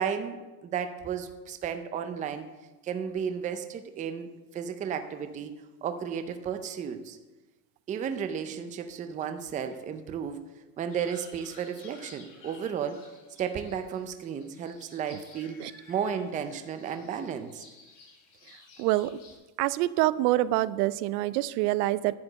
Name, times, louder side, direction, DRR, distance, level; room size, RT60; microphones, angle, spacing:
voice 1, 0.0-2.5 2.8-5.5 5.8-7.2 7.9-10.4 10.8-13.0 13.4-17.6, right 7 dB, 15° right, 8 dB, 0.4 m, -33 dB
sound 1, 10.9-19.3, left 4 dB, 40° left, 3.5 m, -54 dB
voice 2, 18.8-19.2 19.6-22.2, right 16 dB, 75° right, 17 dB, 0.6 m, -26 dB
11.0 x 5.0 x 7.5 m, 1.2 s
supercardioid pair, 145°, 47 cm